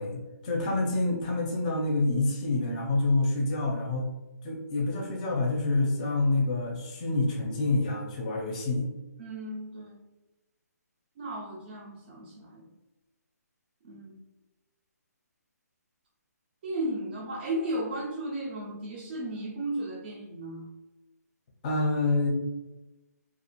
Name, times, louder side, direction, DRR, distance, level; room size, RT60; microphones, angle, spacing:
voice 1, 0.0-4.1 4.4-8.9 21.6-22.3, left 2 dB, 25° left, 0 dB, 0.5 m, -27 dB
voice 2, 9.2-10.0 11.2-12.7 13.8-14.1 16.6-20.7, right 1 dB, 35° right, -4 dB, 0.5 m, -35 dB
2.4 x 2.4 x 2.9 m, 1.1 s
hypercardioid pair, 160°, 9 cm